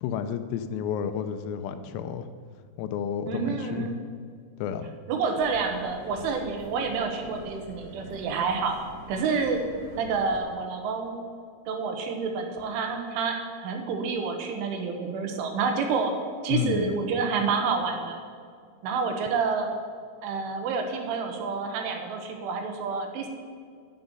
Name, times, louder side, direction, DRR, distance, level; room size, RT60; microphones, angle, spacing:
voice 1, 0.0-2.3 2.8-4.0 4.6-4.9 16.5-16.9, left 8 dB, 85° left, 9 dB, 3.5 m, -31 dB
voice 2, 3.3-3.9 5.1-8.8 9.1-9.7 10.0-11.2 11.7-16.1 16.4-18.2 18.8-19.7 20.2-23.3, right 5 dB, 75° right, 4 dB, 3.6 m, -28 dB
sound 1, 5.4-10.4, left 1 dB, 25° left, 3.5 m, -46 dB
10.0 x 9.6 x 9.5 m, 2.1 s
omnidirectional pair, 6.0 m